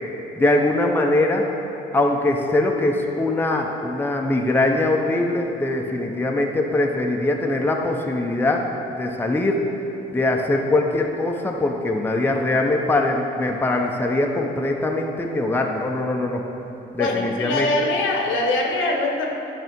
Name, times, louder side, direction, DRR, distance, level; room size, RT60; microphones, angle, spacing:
voice 1, 0.4-1.5 1.9-8.7 9.0-9.6 10.1-16.4 16.9-17.9, left 2 dB, 10° left, 1 dB, 0.6 m, -22 dB
voice 2, 17.0-19.3, left 2 dB, 80° left, 1 dB, 1.0 m, -23 dB
9.0 x 3.4 x 5.2 m, 2.9 s
cardioid pair, 90°, 20 cm